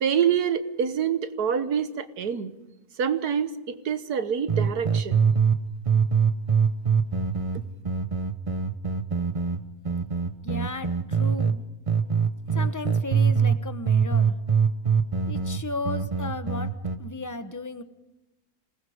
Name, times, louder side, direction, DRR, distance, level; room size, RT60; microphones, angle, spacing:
voice 1, 0.0-2.5 3.0-5.2, right 8 dB, 75° right, 11 dB, 1.7 m, -26 dB
sound 1, 4.5-5.6 5.9-11.6 11.9-13.6 13.9-17.0, right 6 dB, 30° right, 0.7 m, -23 dB
voice 2, 10.4-11.6 12.5-14.4 15.3-16.7 17.0-17.8, left 2 dB, 15° left, 9 dB, 0.8 m, -35 dB
27.0 x 19.5 x 5.0 m, 1.0 s
omnidirectional pair, 1.7 m